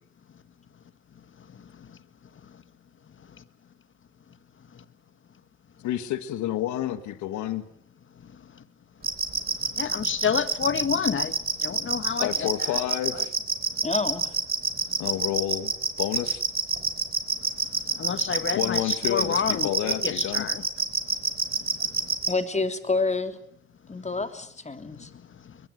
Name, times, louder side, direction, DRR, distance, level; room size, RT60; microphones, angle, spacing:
voice 1, 5.8-7.7 12.2-13.4 15.0-15.7 16.0-16.4 18.5-20.5, left 12 dB, 70° left, 13 dB, 1.6 m, -29 dB
sound 1, 9.0-22.3, right 4 dB, 30° right, 3.7 m, -26 dB
voice 2, 9.8-11.3 11.6-12.5 13.1-13.3 18.0-20.6, left 7 dB, 40° left, 13 dB, 1.8 m, -28 dB
voice 3, 13.8-14.3 22.3-23.4 23.9-25.1, left 3 dB, 20° left, 8 dB, 3.0 m, -28 dB
22.5 x 21.0 x 8.0 m, 0.68 s
hypercardioid pair, 60°, 30 cm